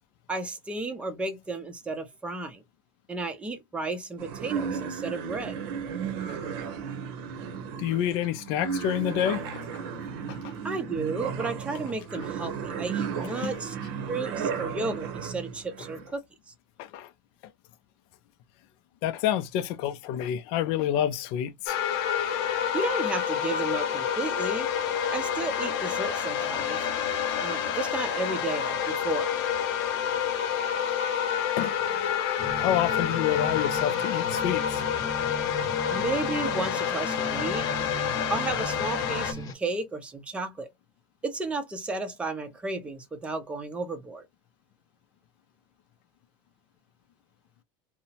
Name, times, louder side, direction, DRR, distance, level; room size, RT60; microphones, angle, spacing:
voice 1, 0.3-2.6 3.1-5.6 10.6-13.8 14.1-16.2 22.7-24.7 25.1-26.9 27.4-29.3 35.9-37.7 38.3-40.7 41.2-44.2, right 3 dB, 10° right, 0.6 m, -33 dB
sound 1, 4.2-16.1, right 7 dB, 70° right, 0.7 m, -34 dB
voice 2, 7.8-9.6 13.4-13.6 16.8-17.1 19.0-21.8 31.6-31.7 32.6-34.8 37.2-37.3, left 11 dB, 50° left, 0.4 m, -28 dB
sound 2, 21.7-39.3, left 8 dB, 70° left, 0.8 m, -28 dB
sound 3, 32.4-39.5, left 1 dB, 30° left, 0.8 m, -37 dB
2.8 x 2.1 x 2.7 m
supercardioid pair, 160°, 12 cm